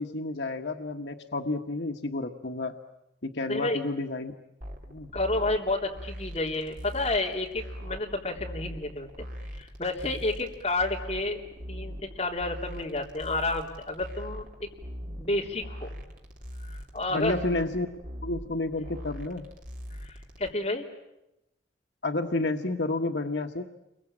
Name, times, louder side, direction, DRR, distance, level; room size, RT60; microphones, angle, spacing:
voice 1, 0.0-2.7 3.2-4.3 4.9-5.1 17.1-17.9 18.2-19.4 22.0-23.6, left 2 dB, 80° left, 5 dB, 1.4 m, -30 dB
voice 2, 3.5-3.8 5.1-9.1 9.5-11.4 11.7-14.5 15.2-15.9 16.7-17.4 20.0-20.9, left 2 dB, 35° left, 0 dB, 3.5 m, -30 dB
sound 1, 4.6-20.5, equal, 50° right, 3.3 m, -41 dB
29.5 x 23.5 x 8.8 m, 0.89 s
head